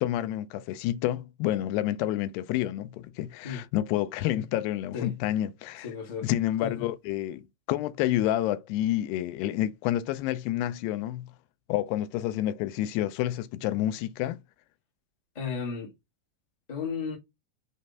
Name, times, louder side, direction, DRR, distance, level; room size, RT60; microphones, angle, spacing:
voice 1, 0.0-5.9 6.2-11.3 11.7-14.4, left 13 dB, 85° left, 2.7 m, -29 dB
voice 2, 5.8-6.3 6.6-6.9 15.3-15.9 16.7-17.2, left 6 dB, 65° left, 0.4 m, -34 dB
6.5 x 3.2 x 5.5 m
omnidirectional pair, 4.8 m